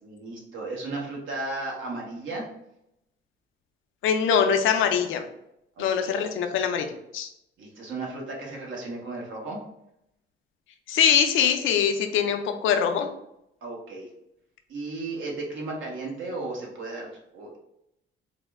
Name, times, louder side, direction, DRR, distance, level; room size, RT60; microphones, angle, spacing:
voice 1, 0.0-2.5 5.8-6.3 7.6-9.6 13.6-14.1 14.7-17.6, right 2 dB, 75° right, -2 dB, 1.3 m, -35 dB
voice 2, 4.0-5.2 5.8-6.9 7.1-7.3 10.9-13.1, left 7 dB, 80° left, 6 dB, 0.5 m, -23 dB
4.0 x 2.1 x 3.5 m, 0.80 s
cardioid pair, 90°, 20 cm